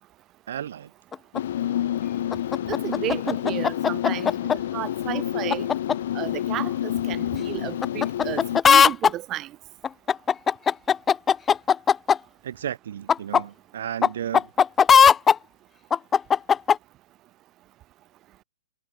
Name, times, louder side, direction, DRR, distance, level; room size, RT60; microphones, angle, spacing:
voice 1, 0.5-0.9 12.4-14.5, right 10 dB, 65° right, 2.2 m, -33 dB
sound 1, 1.1-1.4 2.3-4.6 5.5-5.9 7.8-9.1 9.8-12.2 13.1-13.4 14.0-14.1 14.3-15.4 15.9-16.8, left 7 dB, 15° left, 0.4 m, -17 dB
sound 2, 1.3-8.6, left 11 dB, 60° left, 1.6 m, -28 dB
voice 2, 2.7-4.3 4.7-5.7 6.1-9.5, right 14 dB, 30° right, 2.6 m, -32 dB
hypercardioid pair, 125°, 0 cm